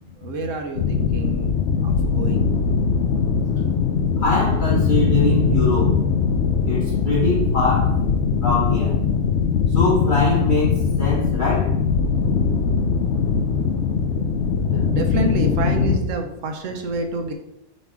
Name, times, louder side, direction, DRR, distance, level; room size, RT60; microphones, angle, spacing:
voice 1, 0.2-1.5 1.8-2.5 14.7-17.3, right 3 dB, 90° right, 5 dB, 1.3 m, -28 dB
sound 1, 0.8-16.0, left 6 dB, 65° left, 1.0 m, -21 dB
voice 2, 4.2-6.0 6.7-7.9 8.4-9.0 9.7-11.7, left 2 dB, 40° left, -7 dB, 1.7 m, -22 dB
7.4 x 4.2 x 4.8 m, 0.83 s
omnidirectional pair, 1.3 m